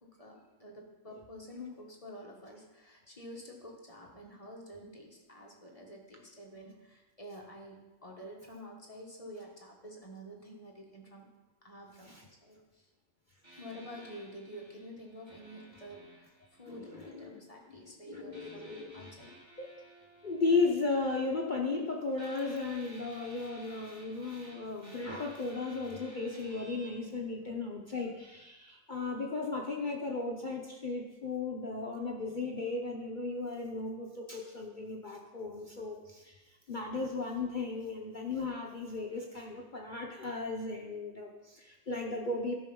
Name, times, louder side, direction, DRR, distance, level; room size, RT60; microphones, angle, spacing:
voice 1, 0.0-11.3 11.6-12.9 13.6-19.4, equal, 20° left, -1 dB, 1.3 m, -49 dB
sound 1, 13.4-17.3 18.3-21.8 22.1-26.9, equal, 20° right, 2.5 m, -55 dB
voice 2, 16.7-17.3 17.6-19.1 19.6-19.7 20.2-42.5, left 3 dB, 55° left, 0 dB, 0.5 m, -35 dB
12.5 x 5.2 x 5.3 m, 1.1 s
omnidirectional pair, 2.0 m